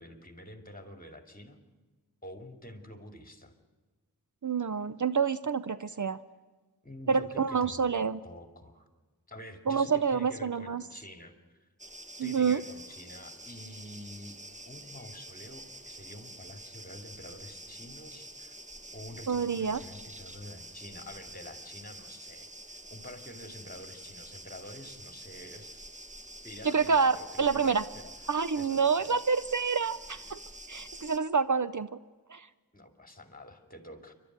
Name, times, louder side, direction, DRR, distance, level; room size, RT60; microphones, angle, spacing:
voice 1, 0.0-1.6 2.2-3.5 5.9-6.1 6.8-7.9 8.2-8.9 9.3-11.3 11.6-11.7 12.2-14.4 14.7-18.6 18.9-25.9 26.4-28.1 28.6-29.2 32.7-34.1, left 1 dB, 20° left, 6 dB, 2.5 m, -47 dB
voice 2, 4.4-6.2 7.1-8.2 9.7-10.8 12.2-12.6 19.3-19.8 26.7-27.8 28.3-30.4 30.7-31.9 32.3-32.5, right 5 dB, 50° right, 13 dB, 0.6 m, -28 dB
sound 1, 11.8-31.2, right 1 dB, 20° right, 1.1 m, -47 dB
27.0 x 12.5 x 9.3 m, 1.3 s
wide cardioid pair, 65°, 38 cm